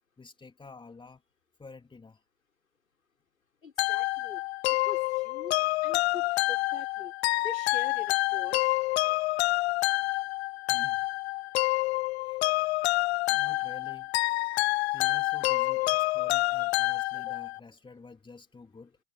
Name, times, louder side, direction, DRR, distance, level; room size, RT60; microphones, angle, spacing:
voice 1, 0.2-1.2 1.6-2.2 10.7-11.1 12.2-12.4 13.3-14.1 14.9-19.0, left 4 dB, 10° left, 3.4 m, -50 dB
voice 2, 3.6-4.4 4.9-7.1 7.4-8.7 15.8-16.0 16.4-16.7, left 4 dB, 90° left, 4.6 m, -44 dB
sound 1, 3.8-17.6, left 21 dB, 55° left, 0.6 m, -28 dB
hypercardioid pair, 95°, 40 cm